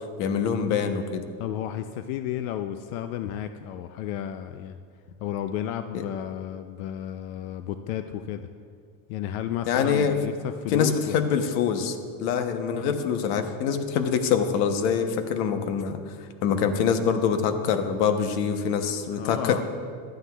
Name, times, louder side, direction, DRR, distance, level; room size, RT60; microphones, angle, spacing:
voice 1, 0.2-1.2 9.7-10.2 10.7-16.0 16.4-19.6, left 7 dB, 55° left, 8 dB, 0.9 m, -25 dB
voice 2, 1.4-4.8 5.2-8.5 9.1-11.3 12.8-13.5 19.1-19.6, left 10 dB, 80° left, 9 dB, 0.5 m, -33 dB
15.0 x 11.5 x 2.3 m, 2.1 s
cardioid pair, 175°, 40 cm